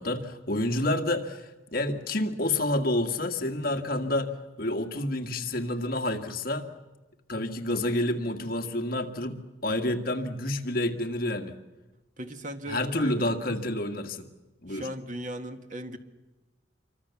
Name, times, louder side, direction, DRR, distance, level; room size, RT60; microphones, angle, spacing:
voice 1, 0.0-4.3 4.6-6.7 7.3-9.4 9.6-11.6 12.7-14.3 14.6-14.9, left 1 dB, 50° left, 5 dB, 1.9 m, -29 dB
voice 2, 12.2-13.3 14.7-16.0, right 1 dB, 40° right, 7 dB, 1.7 m, -37 dB
27.0 x 24.0 x 7.1 m, 1.1 s
head